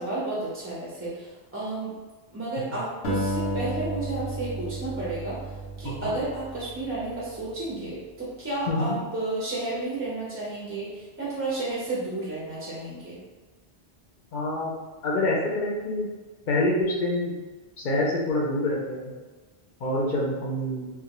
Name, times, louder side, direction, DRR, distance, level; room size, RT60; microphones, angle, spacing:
voice 1, 0.0-1.9 2.3-5.5 5.8-13.2, right 2 dB, 20° right, -7 dB, 0.4 m, -32 dB
Acoustic guitar, 3.0-7.5, right 1 dB, 85° left, 0.9 m, -32 dB
voice 2, 14.3-14.7 15.0-16.1 16.5-17.3 17.8-19.1 19.8-20.9, left 1 dB, 60° left, -3 dB, 0.6 m, -26 dB
2.2 x 2.1 x 2.9 m, 1.3 s
omnidirectional pair, 1.1 m